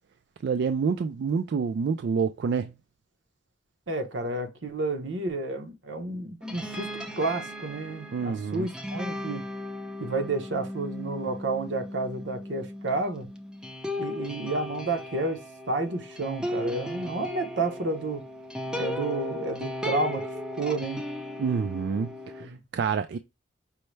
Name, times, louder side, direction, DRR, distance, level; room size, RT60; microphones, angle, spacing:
voice 1, 0.4-2.7 8.1-8.7 21.4-23.2, right 5 dB, 60° right, 0.3 m, -28 dB
voice 2, 3.9-9.5 10.0-13.3 14.0-15.4 15.7-18.2 18.8-20.3 20.6-21.0 22.4-22.6, right 2 dB, 80° right, 0.9 m, -31 dB
sound 1, 6.4-22.5, left 1 dB, 5° right, 0.5 m, -36 dB
5.5 x 2.1 x 3.2 m
head